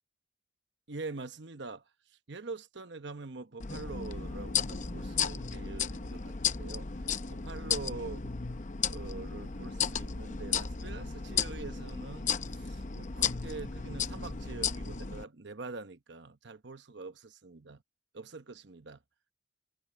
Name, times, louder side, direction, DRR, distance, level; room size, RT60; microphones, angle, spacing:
voice 1, 0.9-1.8 2.3-6.9 7.3-8.3 8.9-12.3 12.6-17.8 18.1-19.0, right 3 dB, 60° right, 1.0 m, -44 dB
sound 1, 3.6-15.2, left 7 dB, 40° left, 0.7 m, -34 dB
head